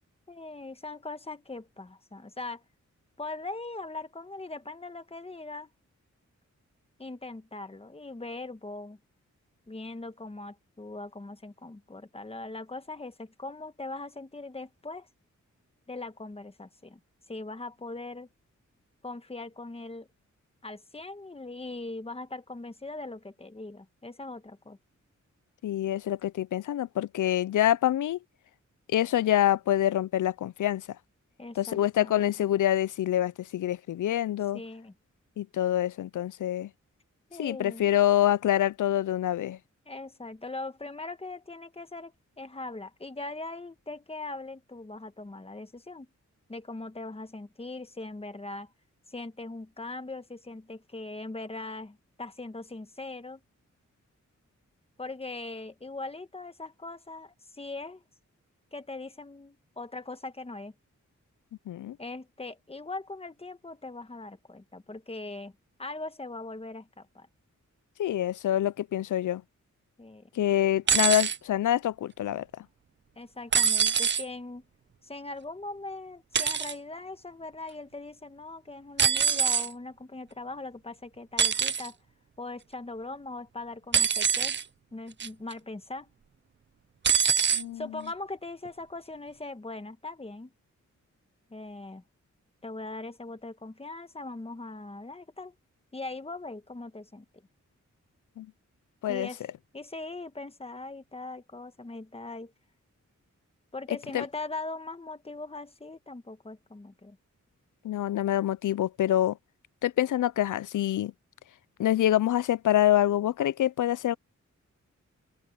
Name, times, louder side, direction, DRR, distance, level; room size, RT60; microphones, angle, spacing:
voice 1, 0.3-2.6 3.2-5.7 7.0-9.0 9.7-15.1 15.9-17.0 17.3-18.3 19.0-20.1 20.6-24.8 31.4-32.5 34.5-34.9 37.3-37.9 39.8-46.1 46.5-48.7 49.1-53.4 55.0-58.0 58.7-60.7 62.0-65.5 65.8-67.3 70.0-70.3 73.1-74.6 75.0-82.0 82.4-84.6 84.9-86.1 87.7-90.5 91.5-92.0 92.6-95.5 95.9-97.2 99.1-99.4 99.7-102.5 103.7-107.2, left 2 dB, 20° left, 1.3 m, -40 dB
voice 2, 25.6-28.2 28.9-30.9 31.6-34.6 35.4-36.7 37.4-39.6 61.7-62.0 68.0-69.4 70.3-72.7 87.5-87.8 98.4-98.5 99.0-99.3 104.1-104.2 107.8-109.4 109.8-111.1 111.8-114.1, left 12 dB, 80° left, 0.5 m, -26 dB
sound 1, 70.9-71.4 73.5-74.2 76.3-76.7 79.0-79.7 81.4-81.9 83.9-84.6 85.2-85.5 87.0-87.6 88.6-88.7, right 7 dB, 40° right, 0.5 m, -24 dB
wide cardioid pair, 105°, 30 cm